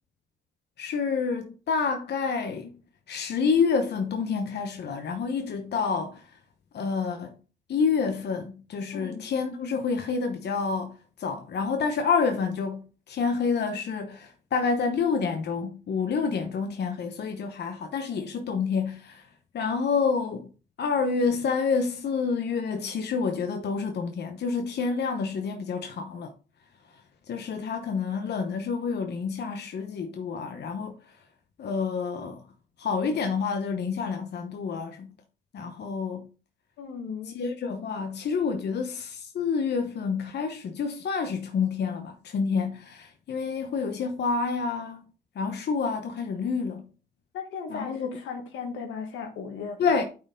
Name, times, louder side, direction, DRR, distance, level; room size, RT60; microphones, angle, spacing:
voice 1, 0.8-2.8 3.1-6.4 6.7-7.3 7.7-19.3 19.5-20.5 20.8-26.3 26.9-27.0 27.3-31.2 31.6-32.4 32.8-35.1 35.5-36.3 37.3-45.0 45.3-46.9 47.7-48.2 49.8-50.0, left 5 dB, 60° left, 0.9 m, -28 dB
voice 2, 8.9-9.2 36.8-37.4 47.3-49.8, left 5 dB, 85° left, 1.6 m, -36 dB
8.5 x 4.5 x 3.7 m
cardioid pair, 75°, 19 cm